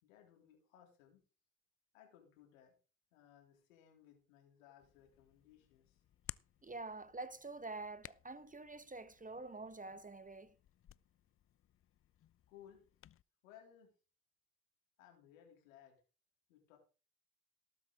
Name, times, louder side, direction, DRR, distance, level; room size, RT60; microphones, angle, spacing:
voice 1, 0.0-1.2 1.9-2.7 3.1-6.0 12.5-12.8 13.4-13.9 15.0-16.0 16.5-16.8, left 10 dB, 85° left, 3.3 m, -62 dB
Hands, 4.8-13.2, left 11 dB, 35° left, 0.5 m, -58 dB
voice 2, 6.6-10.5, right 3 dB, 20° right, 1.2 m, -47 dB
18.5 x 7.9 x 3.8 m
hypercardioid pair, 40°, 39 cm